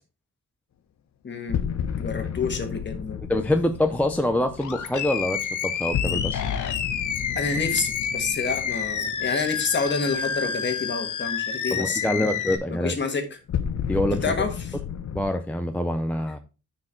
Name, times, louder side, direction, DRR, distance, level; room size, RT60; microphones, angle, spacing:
voice 1, 1.2-1.6 2.0-3.2 7.4-12.2 12.7-13.4 14.2-14.8, left 4 dB, 40° left, 6 dB, 1.4 m, -28 dB
sound 1, 1.5-10.5 13.5-15.3, left 8 dB, 60° left, 0.8 m, -32 dB
voice 2, 3.3-6.4 11.7-12.9 13.9-14.3 15.1-16.4, left 1 dB, 5° left, 6 dB, 0.4 m, -25 dB
Animal, 4.6-12.6, left 7 dB, 80° left, 1.1 m, -29 dB
9.8 x 4.5 x 4.3 m, 0.31 s
wide cardioid pair, 180°, 30 cm